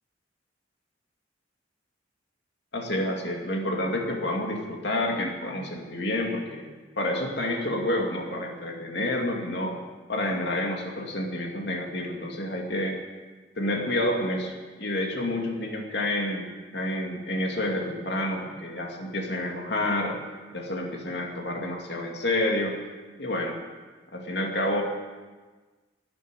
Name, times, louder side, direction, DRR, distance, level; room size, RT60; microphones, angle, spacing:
voice 1, 2.7-6.7 7.0-9.8 10.1-13.0 13.6-14.5 14.8-20.2 20.5-22.8 23.2-23.6 24.1-24.8, left 1 dB, 65° left, 1 dB, 2.4 m, -29 dB
13.0 x 10.0 x 9.6 m, 1.4 s
head